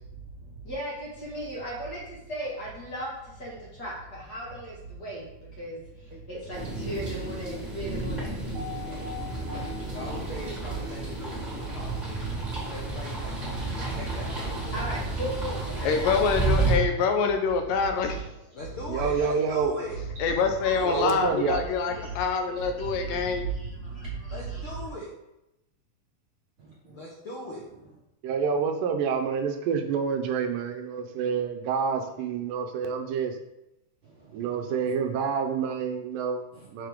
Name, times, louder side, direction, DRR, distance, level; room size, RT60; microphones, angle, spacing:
voice 1, 0.2-8.6 8.8-9.1 11.4-11.9 13.1-16.1 18.0-18.3 19.9-20.0 21.2-21.6 21.9-22.2 22.8-24.9, right 2 dB, 35° left, -5 dB, 2.1 m, -37 dB
sound 1, 6.5-16.7, right 3 dB, 15° right, 2.5 m, -31 dB
voice 2, 8.5-10.7 13.5-13.7 18.1-18.2 26.6-27.0 34.0-34.9 36.5-36.7, left 5 dB, 55° right, -5 dB, 1.6 m, -44 dB
voice 3, 9.9-12.2 12.7-13.4 13.7-14.9 18.5-20.0 20.6-21.1 24.3-25.1 26.9-27.6, left 1 dB, 60° left, -4 dB, 1.4 m, -40 dB
voice 4, 15.8-18.2 20.2-23.5, left 5 dB, 80° left, 5 dB, 2.4 m, -25 dB
voice 5, 18.9-19.8 20.8-21.6 28.2-33.4 34.3-36.5 36.7-36.9, right 6 dB, 75° right, 4 dB, 2.3 m, -28 dB
6.9 x 6.7 x 3.7 m, 0.90 s
omnidirectional pair, 4.0 m